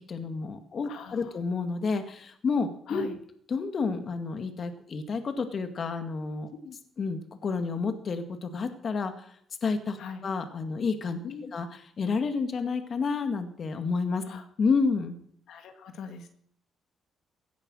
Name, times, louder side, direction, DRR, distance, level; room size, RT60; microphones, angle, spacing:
voice 1, 0.0-3.1 3.5-6.5 7.0-9.3 9.6-11.2 11.5-14.2 14.6-15.2, left 4 dB, 50° left, 7 dB, 2.1 m, -30 dB
voice 2, 0.8-1.3 2.9-3.2 6.6-6.8 10.0-10.3 11.2-11.5 14.3-14.4 15.5-16.3, left 6 dB, 75° left, 6 dB, 2.0 m, -41 dB
17.0 x 10.5 x 6.4 m, 0.65 s
cardioid pair, 90°, 0 cm